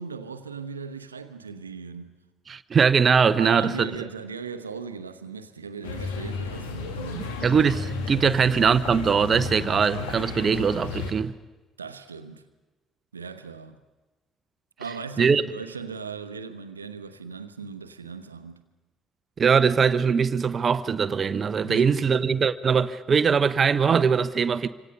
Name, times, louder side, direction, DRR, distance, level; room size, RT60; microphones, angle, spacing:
voice 1, 0.0-2.2 3.4-7.4 8.2-8.4 11.8-12.4 13.1-13.8 14.8-18.6 21.6-22.1, right 5 dB, 85° right, 1.0 m, -38 dB
voice 2, 2.5-3.9 7.1-11.3 15.2-15.4 19.4-24.7, right 6 dB, 40° right, 0.9 m, -21 dB
sound 1, 5.8-11.1, left 4 dB, 75° left, 2.1 m, -33 dB
26.5 x 25.5 x 5.5 m
figure-of-eight pair, 50°, 0 cm